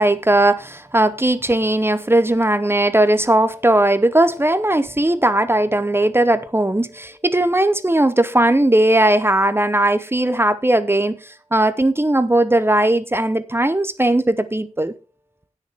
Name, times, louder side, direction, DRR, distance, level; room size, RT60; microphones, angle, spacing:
voice 1, 0.0-14.9, right 1 dB, 20° right, 0.8 m, -18 dB
16.5 x 6.7 x 3.5 m
wide cardioid pair, 65°, 12 cm